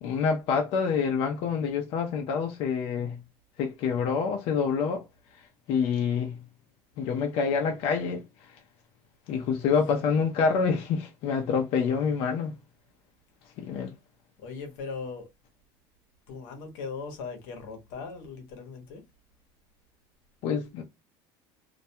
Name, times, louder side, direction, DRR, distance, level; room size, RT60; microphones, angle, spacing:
voice 1, 0.0-3.2 3.6-5.1 5.7-6.4 7.0-8.6 9.3-12.5 13.6-13.9 20.4-20.8, left 6 dB, 60° left, 0.5 m, -27 dB
voice 2, 14.4-15.3 16.3-19.0, left 4 dB, 85° left, 0.8 m, -39 dB
2.3 x 2.1 x 2.7 m
cardioid pair, 125°, 11 cm